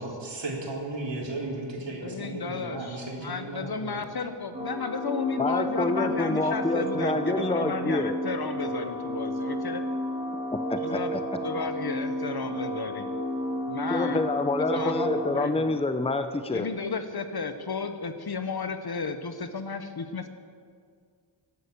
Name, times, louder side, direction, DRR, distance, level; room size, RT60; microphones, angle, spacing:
voice 1, 0.0-4.0, right 2 dB, 75° right, -2 dB, 3.6 m, -35 dB
voice 2, 2.0-9.8 10.8-11.1 11.4-13.1 13.7-14.2 14.6-15.8 16.5-20.3, left 4 dB, 55° left, 8 dB, 1.1 m, -33 dB
sound 1, 4.5-15.3, equal, 15° right, 3.6 m, -32 dB
voice 3, 5.4-8.2 10.5-11.2 13.9-16.7, left 2 dB, 15° left, 9 dB, 0.7 m, -27 dB
16.5 x 11.5 x 6.8 m, 2.1 s
wide cardioid pair, 115°, 44 cm